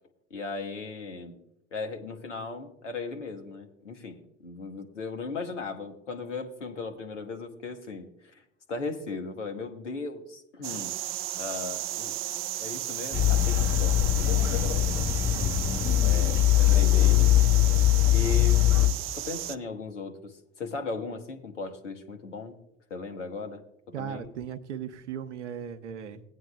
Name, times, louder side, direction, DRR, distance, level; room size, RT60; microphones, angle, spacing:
voice 1, 0.3-1.3 1.7-8.4 8.7-15.1 15.3-17.3 18.1-22.6 22.9-23.6 24.0-24.3, left 4 dB, 80° left, 5 dB, 1.1 m, -37 dB
sound 1, 10.6-19.6, right 13 dB, 35° right, 0.5 m, -34 dB
sound 2, 13.1-18.9, left 13 dB, 40° left, 2.3 m, -22 dB
voice 2, 23.9-26.2, right 8 dB, 75° right, 13 dB, 0.8 m, -37 dB
18.0 x 9.3 x 2.3 m, 0.81 s
figure-of-eight pair, 60°, 36 cm